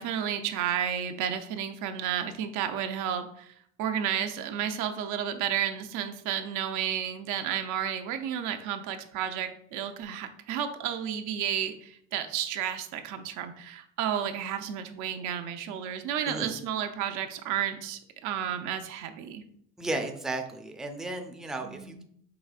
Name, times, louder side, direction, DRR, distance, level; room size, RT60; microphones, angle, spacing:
voice 1, 0.0-19.4 21.6-22.0, right 9 dB, 80° right, 7 dB, 0.5 m, -32 dB
voice 2, 19.8-22.0, right 2 dB, ahead, 4 dB, 0.4 m, -34 dB
4.9 x 3.2 x 2.4 m, 0.66 s
cardioid pair, 110°, 30 cm